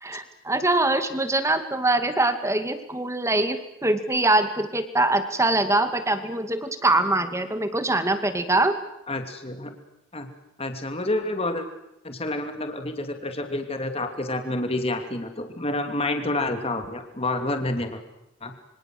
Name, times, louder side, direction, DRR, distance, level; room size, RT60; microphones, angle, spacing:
voice 1, 0.0-8.8, right 2 dB, 15° right, 9 dB, 2.4 m, -23 dB
voice 2, 9.1-9.7 10.1-10.3 10.6-11.6 12.0-18.0 18.4-18.5, left 2 dB, 30° left, 6 dB, 2.8 m, -28 dB
27.0 x 25.0 x 7.9 m, 0.86 s
head